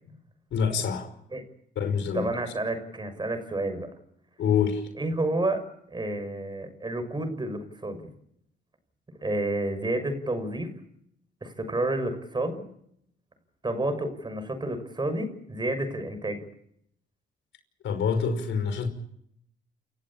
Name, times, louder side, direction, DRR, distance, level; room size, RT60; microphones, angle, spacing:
voice 1, 0.5-1.1 1.8-2.3 4.4-4.9 17.8-18.9, left 6 dB, 70° left, 5.5 m, -26 dB
voice 2, 2.1-3.9 5.0-5.6 5.9-8.0 9.2-10.7 11.4-12.6 13.6-16.4, right 2 dB, 20° right, 6.2 m, -30 dB
29.0 x 15.5 x 8.8 m
cardioid pair, 90°, 20 cm